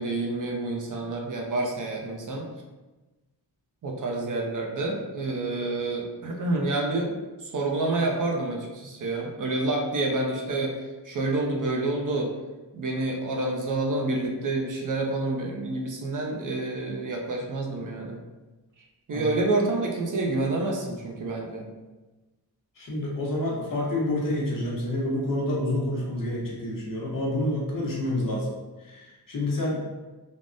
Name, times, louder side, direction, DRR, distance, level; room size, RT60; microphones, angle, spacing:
voice 1, 0.0-2.5 3.8-10.7 11.0-12.3 12.7-18.2 19.1-21.7, right 2 dB, 50° right, 0 dB, 0.5 m, -28 dB
voice 2, 22.8-28.5 28.8-30.0, left 1 dB, 55° left, -3 dB, 0.8 m, -28 dB
3.4 x 2.0 x 2.5 m, 1.2 s
wide cardioid pair, 150°, 40 cm